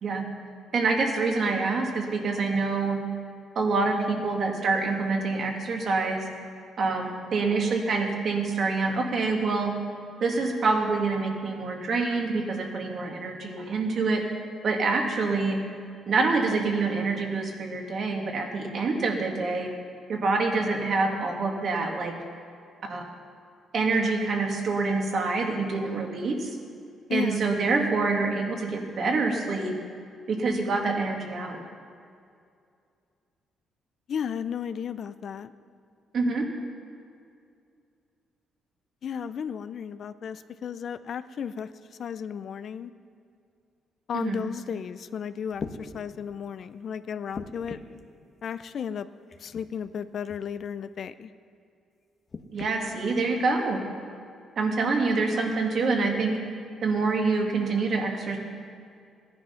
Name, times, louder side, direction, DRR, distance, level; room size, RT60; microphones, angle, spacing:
voice 1, 0.7-3.0 3.6-6.3 6.8-9.7 10.2-14.2 14.6-15.6 16.1-19.7 20.1-22.1 22.8-23.0 23.7-26.5 27.1-29.7 30.3-31.6 36.1-36.5 44.1-44.4 52.5-53.8 54.6-56.4 56.8-58.4, right 3 dB, 55° right, 2 dB, 2.0 m, -26 dB
voice 2, 27.1-27.4 34.1-35.5 39.0-42.9 44.1-47.8 48.4-49.1 49.4-51.3, left 7 dB, 60° left, 13 dB, 0.5 m, -34 dB
sound 1, 45.5-45.8 47.3-48.0 49.3-49.7 50.2-50.4 52.3-52.7 53.6-53.7, left 4 dB, 40° left, 1.1 m, -38 dB
15.0 x 10.5 x 5.7 m, 2.4 s
cardioid pair, 90°, 0 cm